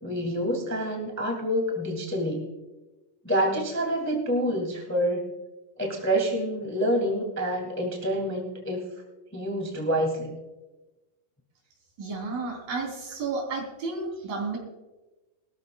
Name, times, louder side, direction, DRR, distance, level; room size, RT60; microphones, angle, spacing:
voice 1, 0.0-2.5 3.2-5.3 5.8-8.8 9.3-10.4, equal, 5° left, 1 dB, 1.5 m, -27 dB
voice 2, 12.0-14.6, right 3 dB, 75° right, 0 dB, 5.1 m, -32 dB
21.0 x 14.0 x 2.3 m, 1.1 s
omnidirectional pair, 4.1 m